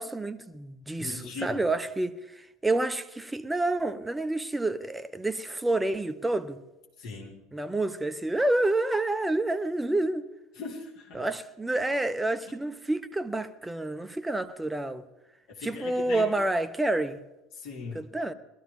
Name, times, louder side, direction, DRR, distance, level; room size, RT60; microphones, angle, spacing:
voice 1, 0.0-6.6 7.5-10.3 11.1-15.1 15.6-17.2 17.9-18.3, right 2 dB, 10° right, 0.8 m, -29 dB
voice 2, 1.0-1.6 7.0-7.3 10.6-11.2 15.6-16.3 17.5-18.0, left 4 dB, 55° left, 3.4 m, -39 dB
21.0 x 13.5 x 3.6 m
figure-of-eight pair, 70°, 0 cm